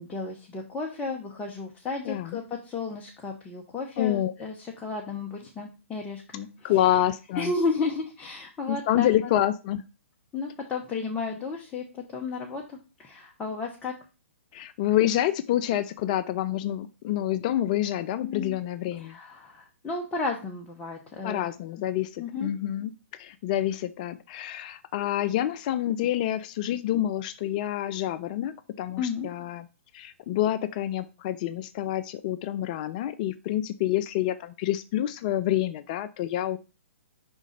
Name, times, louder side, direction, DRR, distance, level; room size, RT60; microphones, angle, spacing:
voice 1, 0.0-6.7 7.4-9.1 10.3-14.0 18.2-18.6 18.9-21.5 22.2-22.5 29.0-29.3, left 4 dB, 10° left, -1 dB, 0.8 m, -33 dB
voice 2, 2.1-2.4 4.0-4.3 6.6-7.5 8.7-9.8 14.5-19.2 21.2-22.9 23.2-29.7 29.9-36.6, left 12 dB, 35° left, 13 dB, 0.4 m, -27 dB
5.3 x 3.7 x 5.0 m, 0.32 s
figure-of-eight pair, 120°, 7 cm